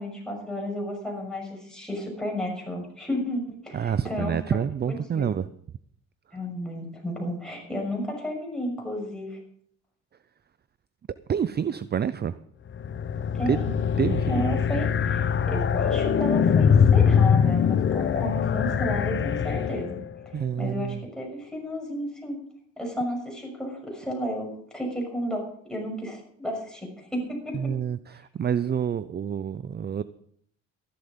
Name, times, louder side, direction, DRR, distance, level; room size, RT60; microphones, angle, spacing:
voice 1, 0.0-4.6 4.9-5.4 6.3-9.4 13.3-13.7 14.3-22.4 22.8-27.8, left 1 dB, ahead, 0 dB, 6.2 m, -32 dB
voice 2, 3.7-5.4 11.3-12.3 13.5-13.6 14.0-14.4 20.3-21.0 27.5-30.0, right 8 dB, 35° right, 15 dB, 0.5 m, -27 dB
sound 1, 12.7-20.1, left 7 dB, 40° left, 0.8 m, -22 dB
13.5 x 12.0 x 5.2 m, 0.65 s
cardioid pair, 90°, 30 cm